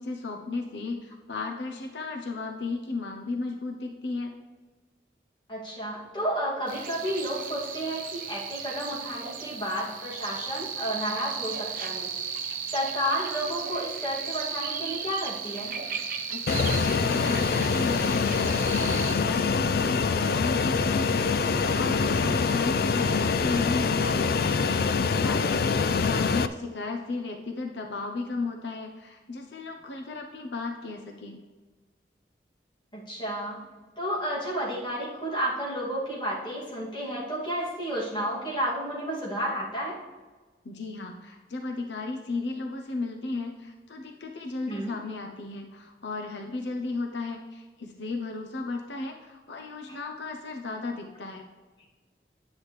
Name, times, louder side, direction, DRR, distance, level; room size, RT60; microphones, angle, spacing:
voice 1, 0.0-4.3 16.3-31.4 40.6-51.4, left 3 dB, 85° left, 3 dB, 0.8 m, -35 dB
voice 2, 5.5-15.8 32.9-33.6 34.0-40.0 44.7-44.9 49.9-50.0, equal, 25° left, -6 dB, 2.3 m, -31 dB
sound 1, 6.7-19.1, right 6 dB, 50° right, 0.8 m, -35 dB
Fixed-wing aircraft airplane, 16.5-26.5, left 5 dB, 55° left, 0.3 m, -25 dB
9.8 x 8.4 x 3.2 m, 1.3 s
head